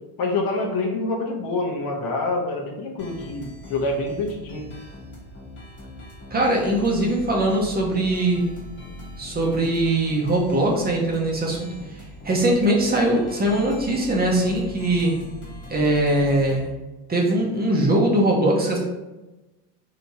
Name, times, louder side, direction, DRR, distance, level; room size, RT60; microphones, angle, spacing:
voice 1, 0.2-4.7, left 2 dB, 60° left, 0 dB, 0.9 m, -26 dB
sound 1, 3.0-16.7, left 1 dB, 30° left, 1.0 m, -41 dB
voice 2, 6.3-8.5 9.2-15.1 15.7-16.7 17.1-18.8, right 1 dB, 25° right, -2 dB, 0.6 m, -21 dB
3.3 x 2.8 x 2.7 m, 1.1 s
cardioid pair, 125°, 41 cm